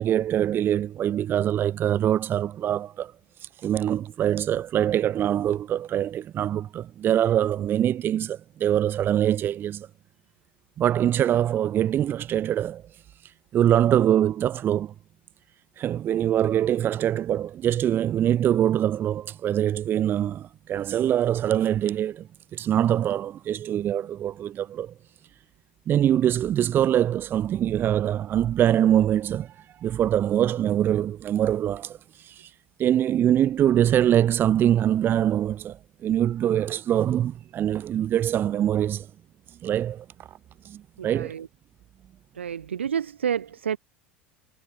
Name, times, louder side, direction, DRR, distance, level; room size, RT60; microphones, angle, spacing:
voice 1, 0.0-3.1 3.4-9.9 10.8-14.9 15.8-22.3 22.5-24.9 25.9-32.5 32.8-39.1 39.5-40.0 40.6-41.3, right 11 dB, 35° right, 1.5 m, -24 dB
voice 2, 41.0-41.5 42.3-43.8, right 8 dB, 75° right, 0.5 m, -29 dB
figure-of-eight pair, 80°, 6 cm